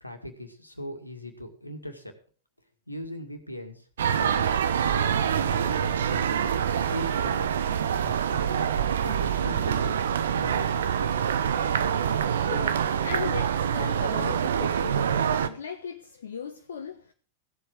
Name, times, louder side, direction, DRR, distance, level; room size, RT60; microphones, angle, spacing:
voice 1, 0.0-2.1 2.9-4.6 4.8-6.5 6.8-7.6 8.0-8.7 9.0-11.7, left 1 dB, 85° left, 2.0 m, -40 dB
sound 1, 4.0-15.5, right 8 dB, 65° right, 0.9 m, -26 dB
voice 2, 12.1-17.1, left 6 dB, 65° left, 1.2 m, -38 dB
16.0 x 8.0 x 6.2 m
figure-of-eight pair, 90°, 0 cm